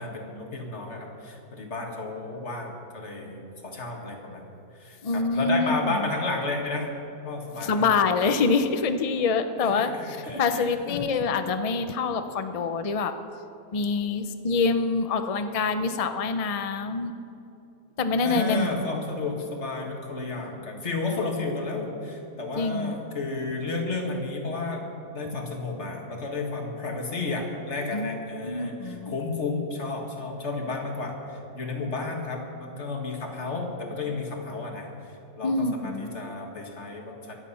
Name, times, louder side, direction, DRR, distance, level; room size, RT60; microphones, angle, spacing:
voice 1, 0.0-4.5 4.8-6.9 7.2-8.0 9.6-11.0 18.2-34.9 35.4-37.3, left 3 dB, 45° left, 1 dB, 2.1 m, -32 dB
voice 2, 5.0-6.1 7.6-13.1 13.7-17.1 18.0-18.7 22.5-22.9 27.9-29.2 35.4-36.1, left 4 dB, 65° left, 8 dB, 0.3 m, -26 dB
23.0 x 8.3 x 5.7 m, 2.8 s
omnidirectional pair, 1.6 m